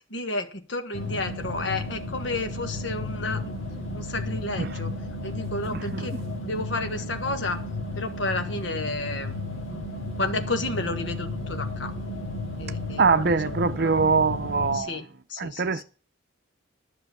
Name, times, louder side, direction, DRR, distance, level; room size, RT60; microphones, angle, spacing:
voice 1, 0.0-3.5 3.9-4.9 5.2-7.6 7.9-9.4 10.2-11.9 12.6-13.9 14.7-15.8, left 2 dB, 65° left, 1.5 m, -32 dB
sound 1, 0.9-14.8, left 1 dB, 80° left, 2.5 m, -33 dB
voice 2, 5.7-6.1 13.0-15.0 15.4-15.8, right 4 dB, 50° right, 0.6 m, -23 dB
10.5 x 6.2 x 8.3 m
head